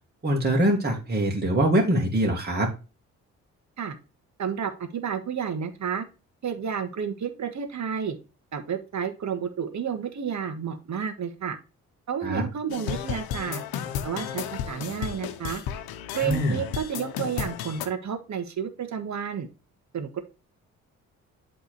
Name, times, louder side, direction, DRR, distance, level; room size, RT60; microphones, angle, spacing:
voice 1, 0.2-2.7 12.2-12.4 16.2-16.6, right 1 dB, 25° right, -1 dB, 2.1 m, -23 dB
voice 2, 4.4-6.0 6.4-8.2 8.5-11.6 12.1-13.6 14.0-15.6 16.1-19.5 19.9-20.2, right 7 dB, 50° right, 9 dB, 1.5 m, -31 dB
sound 1, 12.7-17.9, left 9 dB, 75° left, 0.9 m, -33 dB
8.2 x 3.6 x 4.6 m, 0.30 s
hypercardioid pair, 50°, 36 cm